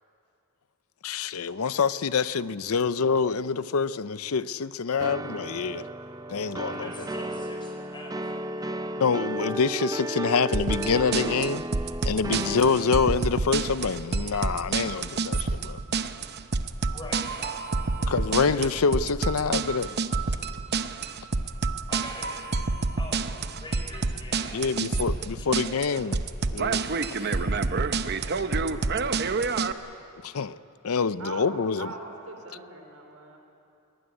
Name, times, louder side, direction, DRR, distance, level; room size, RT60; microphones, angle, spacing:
voice 1, 1.0-5.8 6.3-6.9 9.0-11.6 12.0-15.8 18.1-19.9 24.5-26.2 26.5-26.8 27.2-27.4 30.2-30.6 30.8-31.9, left 5 dB, 70° left, 0.6 m, -26 dB
sound 1, 5.0-13.3, right 1 dB, 15° right, 0.5 m, -34 dB
voice 2, 6.6-8.9 16.9-18.5 21.9-22.4 23.0-24.8 25.1-26.2, left 1 dB, 20° left, 5.2 m, -44 dB
sound 2, 10.5-29.7, right 4 dB, 50° right, 0.8 m, -28 dB
voice 3, 28.0-29.6 31.2-33.4, right 2 dB, 85° right, 4.1 m, -42 dB
21.5 x 19.5 x 9.7 m
head